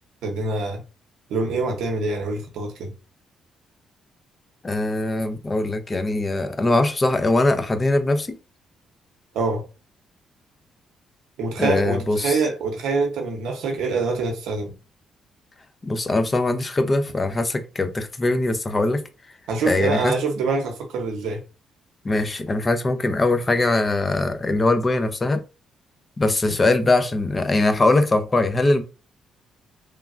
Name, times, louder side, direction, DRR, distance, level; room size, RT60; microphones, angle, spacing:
voice 1, 0.2-0.8 1.3-2.9 9.3-9.7 11.4-14.7 19.5-21.4 26.5-26.6, right 3 dB, 85° right, 0.7 m, -25 dB
voice 2, 4.6-8.4 11.6-12.4 15.8-19.0 19.7-20.1 22.0-25.4 26.2-28.8, left 2 dB, 25° left, 0.5 m, -21 dB
3.2 x 2.2 x 2.4 m
cardioid pair, 90°, 0 cm